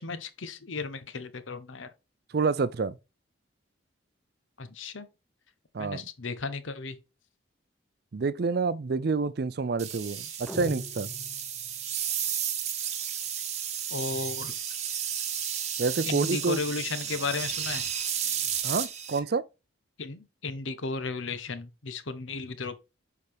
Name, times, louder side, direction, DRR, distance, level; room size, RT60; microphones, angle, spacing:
voice 1, 0.0-1.9 4.6-5.1 5.8-7.0 13.9-14.5 16.0-17.8 20.0-22.8, left 4 dB, 75° left, 0.9 m, -34 dB
voice 2, 2.3-3.0 5.7-6.0 8.1-11.1 15.8-16.6 18.6-19.4, right 4 dB, 50° right, 0.4 m, -28 dB
sound 1, 9.8-19.2, right 9 dB, 35° right, 1.0 m, -33 dB
sound 2, 10.5-11.9, left 1 dB, ahead, 0.7 m, -40 dB
6.6 x 4.8 x 3.4 m
head